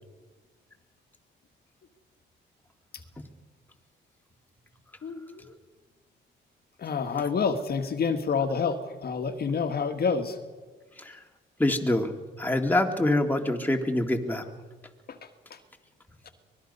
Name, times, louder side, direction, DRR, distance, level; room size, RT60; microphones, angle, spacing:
voice 1, 5.0-5.5 6.8-10.4 15.1-15.6 16.2-16.3, left 5 dB, 50° left, 7 dB, 1.7 m, -28 dB
voice 2, 11.6-12.1 12.4-14.4, left 1 dB, 10° left, 4 dB, 2.1 m, -25 dB
24.0 x 20.0 x 5.5 m, 1.4 s
cardioid pair, 90°, 20 cm